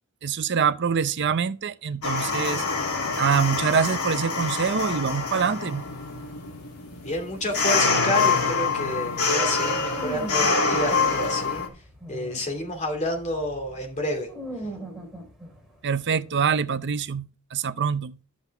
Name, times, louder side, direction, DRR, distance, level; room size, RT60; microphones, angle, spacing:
voice 1, 0.2-2.6 3.2-5.8 15.8-18.2, right 6 dB, 55° right, 0.6 m, -25 dB
sound 1, 2.0-11.7, left 4 dB, 85° left, 2.7 m, -26 dB
voice 2, 7.0-11.6 12.1-14.3, left 1 dB, 35° left, 2.7 m, -29 dB
sound 2, 9.1-17.0, right 1 dB, ahead, 2.8 m, -41 dB
11.0 x 7.5 x 3.5 m
head